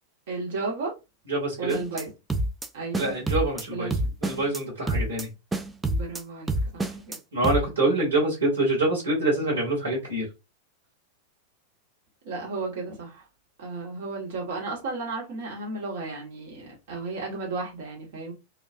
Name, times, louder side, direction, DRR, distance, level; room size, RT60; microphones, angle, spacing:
voice 1, 0.3-0.9 1.6-2.1 2.7-3.1 3.7-4.0 5.9-7.2 12.2-13.3 13.6-18.3, right 3 dB, 55° right, 1.0 m, -34 dB
voice 2, 1.3-1.8 2.9-3.9 4.2-5.3 7.3-10.2, right 2 dB, 75° right, 1.1 m, -25 dB
sound 1, 1.7-2.0 2.3-2.7 2.9-3.6 3.9-4.6 4.9-5.2 5.5-6.2 6.5-7.2 7.4-7.6, right 1 dB, 10° right, 0.3 m, -27 dB
2.3 x 2.2 x 2.5 m
figure-of-eight pair, 90°, 0 cm